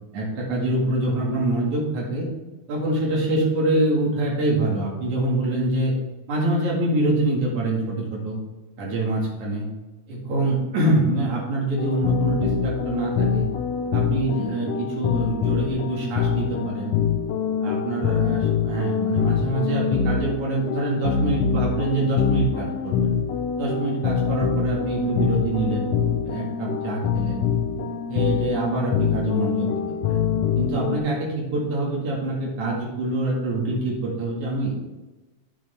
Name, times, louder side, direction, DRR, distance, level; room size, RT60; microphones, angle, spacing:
voice 1, 0.1-2.3 2.7-5.9 6.3-8.4 8.8-9.7 10.1-13.5 13.9-16.9 17.6-23.1 23.6-25.9 26.2-27.5 28.1-30.2 30.6-34.7, right 2 dB, 80° right, -3 dB, 3.4 m, -25 dB
sound 1, 11.8-31.0, left 7 dB, 70° left, 1.8 m, -25 dB
9.1 x 8.6 x 3.4 m, 1.1 s
omnidirectional pair, 3.4 m